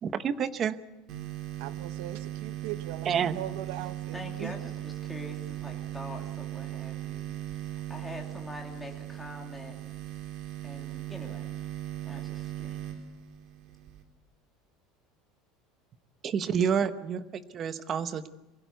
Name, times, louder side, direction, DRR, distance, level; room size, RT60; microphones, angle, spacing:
voice 1, 0.0-0.8 3.1-3.4 16.2-18.3, right 7 dB, 25° right, 11 dB, 0.9 m, -29 dB
sound 1, 1.1-14.0, right 13 dB, 45° right, 3.5 m, -38 dB
voice 2, 1.6-3.1 3.3-4.6, right 14 dB, 70° right, 12 dB, 1.0 m, -39 dB
voice 3, 4.1-7.6 7.9-9.8 10.6-11.5 12.0-12.8, left 1 dB, 5° left, 0 dB, 2.8 m, -44 dB
23.5 x 16.0 x 8.2 m, 1.0 s
cardioid pair, 175°, 0 cm